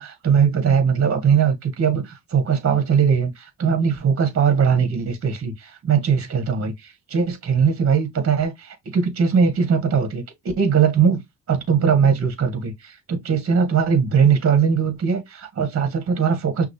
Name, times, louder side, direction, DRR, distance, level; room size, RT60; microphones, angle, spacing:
voice 1, 0.0-11.2 11.5-16.7, right 6 dB, 50° right, 1.7 m, -20 dB
5.9 x 2.8 x 3.2 m
cardioid pair, 90°, 30 cm